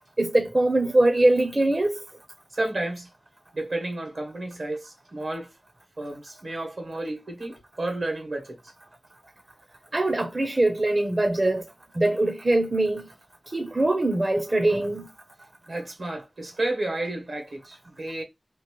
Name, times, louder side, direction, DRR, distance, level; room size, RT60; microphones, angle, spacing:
voice 1, 0.2-2.0 9.9-11.6 11.9-13.1 13.5-15.1, right 2 dB, 40° right, 0.5 m, -22 dB
voice 2, 2.5-3.1 3.5-5.5 6.0-8.6 15.7-18.2, right 2 dB, 80° right, 1.5 m, -31 dB
3.0 x 2.4 x 2.9 m
cardioid pair, 45°, 0 cm